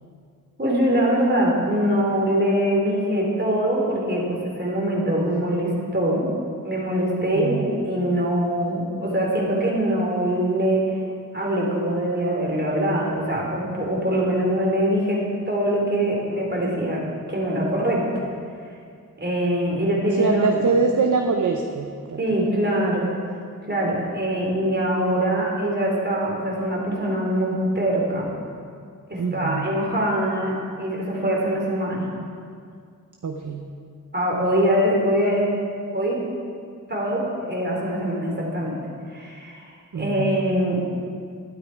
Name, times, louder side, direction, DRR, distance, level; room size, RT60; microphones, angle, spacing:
voice 1, 0.6-6.3 6.6-10.8 11.3-17.0 17.3-18.0 19.2-20.6 22.2-23.1 23.7-28.3 29.1-32.1 34.1-35.5 35.9-36.2 36.9-38.8 39.1-39.6 39.9-40.8, right 1 dB, 30° right, -3 dB, 3.4 m, -23 dB
voice 2, 7.3-7.7 19.7-19.8 20.1-22.2 29.2-29.7 33.2-33.7 39.9-40.4, right 4 dB, 65° right, 3 dB, 0.8 m, -24 dB
13.0 x 11.0 x 4.7 m, 2.2 s
wide cardioid pair, 65°, 33 cm